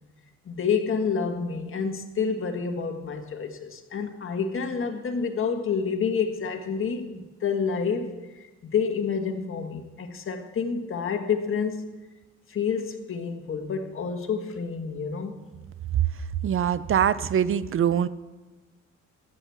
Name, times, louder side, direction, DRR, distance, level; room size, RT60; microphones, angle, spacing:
voice 1, 0.4-11.9 12.5-15.4, left 6 dB, 45° left, 5 dB, 1.7 m, -29 dB
voice 2, 16.4-18.1, right 9 dB, 45° right, 17 dB, 0.6 m, -23 dB
13.0 x 7.9 x 7.1 m, 1.2 s
cardioid pair, 90°, 30 cm